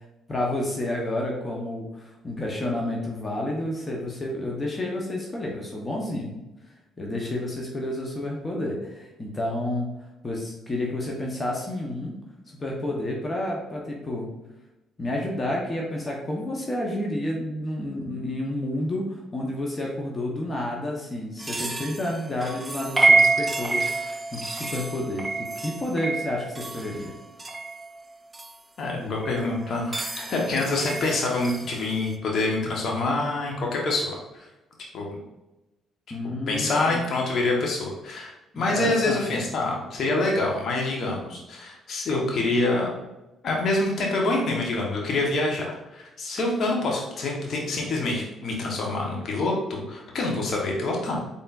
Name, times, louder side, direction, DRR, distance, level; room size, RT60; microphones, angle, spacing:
voice 1, 0.3-6.4 7.0-9.9 10.2-12.2 12.5-14.3 15.0-27.1 36.1-37.0 38.5-39.2, left 1 dB, 30° left, -1 dB, 1.0 m, -30 dB
sound 1, 21.4-28.5 29.2-32.1, right 3 dB, 25° right, 0.4 m, -27 dB
voice 2, 28.8-34.5 34.9-35.2 36.5-42.9 43.4-51.2, left 2 dB, 60° left, -1 dB, 1.3 m, -26 dB
4.3 x 3.5 x 2.5 m, 1.0 s
hypercardioid pair, 55°, 0 cm